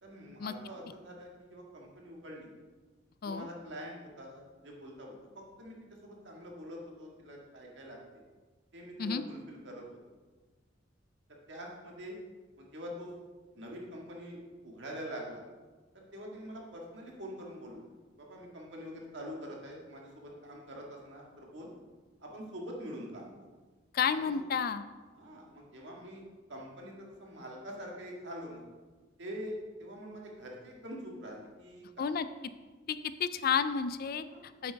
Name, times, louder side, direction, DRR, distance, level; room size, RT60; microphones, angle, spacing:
voice 1, 0.0-2.5 3.2-5.8 6.0-8.2 8.7-9.8 11.5-12.2 12.6-13.1 13.5-15.4 15.9-17.8 18.2-21.7 22.2-23.3 24.1-24.4 25.1-26.2 26.5-28.7 29.2-32.0 34.3-34.5, equal, 65° right, -1 dB, 1.8 m, -45 dB
voice 2, 23.9-24.8 32.0-32.3 32.9-34.7, left 6 dB, 50° left, 12 dB, 0.4 m, -31 dB
9.0 x 7.7 x 3.5 m, 1.3 s
head